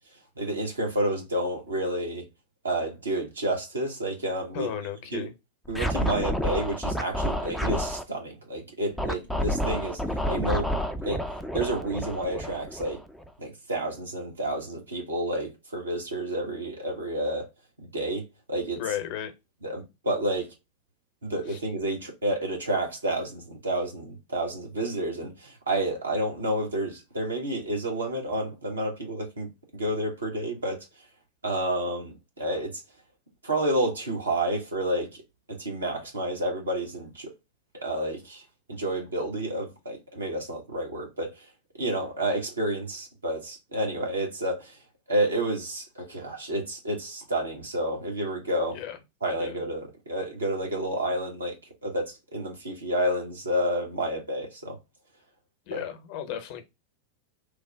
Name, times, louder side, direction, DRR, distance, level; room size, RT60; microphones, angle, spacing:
voice 1, 0.4-2.2 2.6-4.7 5.1-5.3 5.7-10.7 11.0-11.2 11.5-13.0 13.4-17.5 17.8-18.8 19.6-20.5 21.2-30.9 31.4-32.8 33.4-35.1 35.5-37.3 37.7-38.4 38.7-41.4 41.8-44.8 45.1-48.8 49.2-54.8 55.7-55.8, right 1 dB, 75° right, 1.2 m, -30 dB
voice 2, 4.5-5.3 18.8-19.3 21.5-21.6 48.7-49.0 49.4-49.6 55.7-56.6, left 9 dB, 45° left, 0.7 m, -34 dB
Scratching (performance technique), 5.7-8.0 9.0-13.3, equal, ahead, 0.4 m, -29 dB
3.3 x 2.1 x 3.3 m
figure-of-eight pair, 90°, 0 cm